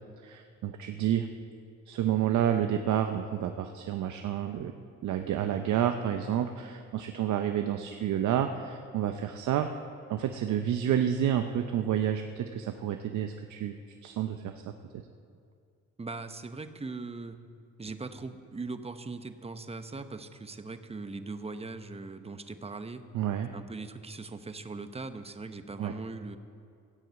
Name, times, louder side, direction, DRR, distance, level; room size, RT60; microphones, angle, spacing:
voice 1, 0.2-1.3 1.9-4.7 5.0-9.7 10.1-14.7 23.1-23.5 25.8-25.9, right 10 dB, 75° right, 6 dB, 0.7 m, -29 dB
voice 2, 16.0-17.5 17.8-23.1 23.5-26.4, right 3 dB, 20° right, 9 dB, 0.9 m, -40 dB
16.0 x 7.8 x 8.1 m, 2.3 s
cardioid pair, 90°, 30 cm